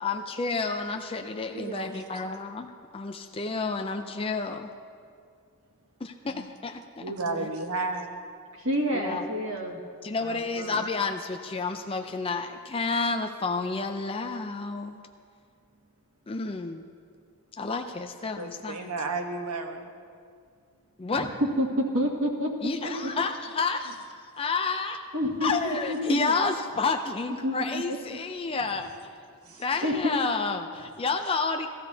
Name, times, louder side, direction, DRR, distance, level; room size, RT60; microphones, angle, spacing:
voice 1, 0.0-4.7 6.0-7.0 7.4-7.5 9.0-9.3 10.0-15.0 16.3-16.8 17.6-18.9 21.0-21.4 22.6-24.0 24.4-25.0 25.4-28.9 29.6-31.7, left 4 dB, 25° left, 5 dB, 0.4 m, -30 dB
voice 2, 1.5-2.0 6.3-6.5 7.0-8.2 18.4-19.9 29.5-29.6, right 3 dB, 80° right, 4 dB, 1.2 m, -33 dB
voice 3, 8.6-9.8 10.2-10.8 21.1-21.3 21.6-22.5 22.8-23.1 25.1-26.3 27.4-27.8 29.8-30.1, equal, 60° right, -2 dB, 1.9 m, -29 dB
18.0 x 13.5 x 2.8 m, 2.2 s
head